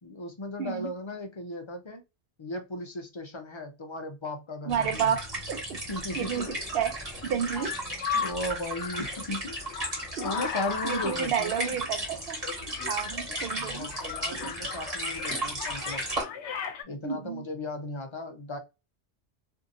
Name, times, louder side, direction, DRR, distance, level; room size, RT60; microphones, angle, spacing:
voice 1, 0.0-2.0 2.4-5.1 5.9-6.5 8.1-9.6 10.2-11.8 13.5-16.0 16.8-18.6, left 1 dB, 50° left, 0.3 m, -36 dB
voice 2, 0.6-0.9 4.7-5.8 6.1-7.8 10.2-10.3 10.8-12.4 12.9-13.9 14.3-14.5 17.0-17.4, right 8 dB, 65° right, 0.7 m, -31 dB
sound 1, 4.7-16.2, right 1 dB, 35° right, 1.2 m, -35 dB
sound 2, 6.1-16.8, left 7 dB, 85° left, 0.9 m, -37 dB
2.7 x 2.6 x 2.5 m
omnidirectional pair, 1.2 m